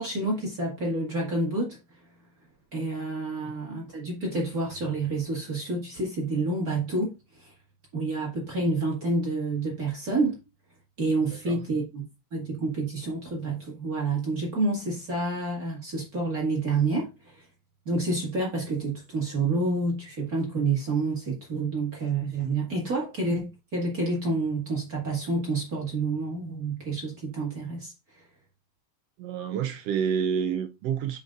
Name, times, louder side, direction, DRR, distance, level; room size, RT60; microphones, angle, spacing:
voice 1, 0.0-1.8 2.7-7.5 7.9-10.4 11.0-12.0 12.3-17.5 17.9-28.2, right 3 dB, 35° right, 1.9 m, -28 dB
voice 2, 29.2-31.2, right 7 dB, 80° right, 1.4 m, -28 dB
8.6 x 5.1 x 2.5 m
omnidirectional pair, 3.3 m